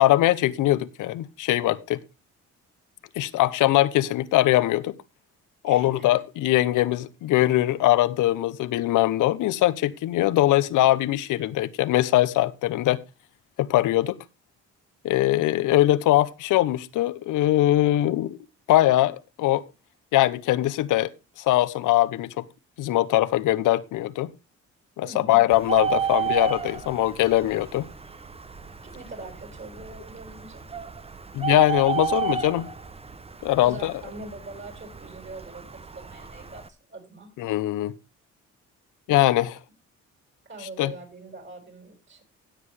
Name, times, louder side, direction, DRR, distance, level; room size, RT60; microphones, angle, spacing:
voice 1, 0.0-2.0 3.2-4.9 5.6-13.0 13.6-14.2 15.0-18.4 18.7-19.6 20.1-21.1 21.4-22.4 22.8-24.3 25.0-27.9 31.3-32.7 33.4-33.9 37.4-37.9 39.1-39.6 40.8-40.9, left 15 dB, 90° left, 0.9 m, -22 dB
voice 2, 5.7-6.2 25.0-25.5 28.8-30.7 33.6-37.3 40.5-42.2, right 2 dB, 40° right, 6.4 m, -42 dB
Bird, 25.5-36.7, right 6 dB, 20° right, 0.9 m, -32 dB
16.5 x 7.7 x 3.3 m
cardioid pair, 90°, 30 cm